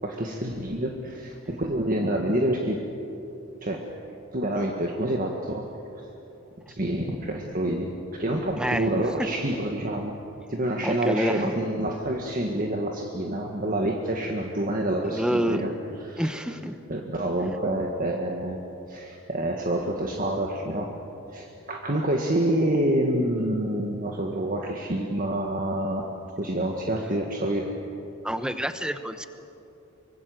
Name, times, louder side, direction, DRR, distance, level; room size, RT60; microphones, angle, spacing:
voice 1, 0.0-2.8 3.6-3.8 4.3-5.7 6.7-10.2 10.5-15.7 16.0-16.4 16.9-18.6 18.9-20.9 21.3-26.1 26.4-27.7, right 1 dB, 40° right, 1 dB, 1.7 m, -27 dB
voice 2, 8.6-8.9 9.2-9.3 10.8-11.5 15.0-15.6 16.2-16.8 28.2-29.3, equal, 5° right, 10 dB, 0.9 m, -27 dB
24.5 x 24.5 x 7.9 m, 2.8 s
head